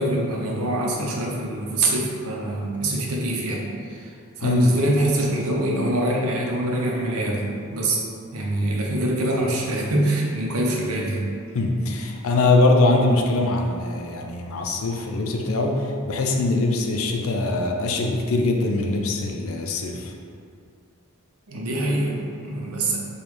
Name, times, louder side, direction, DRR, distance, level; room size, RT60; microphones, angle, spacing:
voice 1, 0.0-8.0 8.3-11.3 14.9-15.0 21.5-23.0, right 1 dB, 85° right, -2 dB, 0.7 m, -24 dB
voice 2, 11.5-20.1, left 2 dB, 70° left, 2 dB, 0.5 m, -22 dB
5.2 x 2.3 x 3.2 m, 2.3 s
head